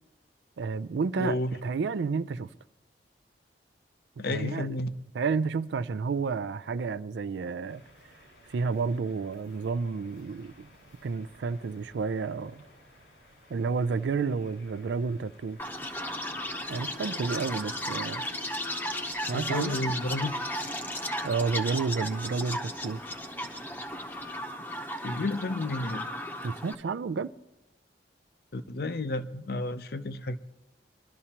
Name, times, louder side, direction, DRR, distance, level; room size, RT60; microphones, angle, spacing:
voice 1, 0.6-2.5 4.3-4.8 5.1-7.8 8.5-10.7 11.0-12.6 13.5-15.6 16.7-18.2 19.3-19.8 21.2-23.0 26.4-27.3, right 4 dB, 80° right, 0.4 m, -30 dB
voice 2, 1.2-1.5 4.2-4.9 19.3-20.3 25.0-26.1 28.5-30.4, left 2 dB, 60° left, 0.6 m, -31 dB
sound 1, 7.7-24.4, left 1 dB, 90° left, 4.9 m, -57 dB
Chirp tweet, 15.6-26.7, left 1 dB, 10° left, 0.8 m, -35 dB
22.0 x 12.5 x 2.9 m
head